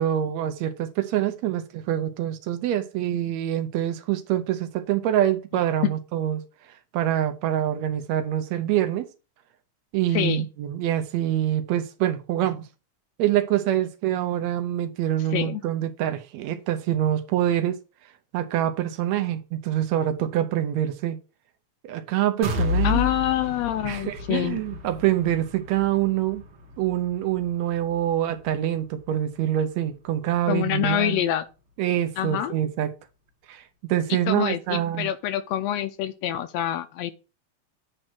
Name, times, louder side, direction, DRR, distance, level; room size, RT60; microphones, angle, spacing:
voice 1, 0.0-6.4 6.9-9.1 9.9-12.7 13.2-17.8 18.3-21.2 21.8-23.1 23.8-26.4 26.8-31.2 31.8-32.9 33.5-35.1, right 12 dB, 75° right, 1.9 m, -25 dB
voice 2, 10.1-10.5 15.3-15.6 22.8-24.6 30.5-31.4 32.2-32.5 34.3-37.1, left 12 dB, 80° left, 1.6 m, -26 dB
sound 1, 22.4-30.2 30.6-30.7 31.1-31.2, left 3 dB, 60° right, 1.8 m, -32 dB
8.9 x 3.2 x 6.0 m
omnidirectional pair, 3.3 m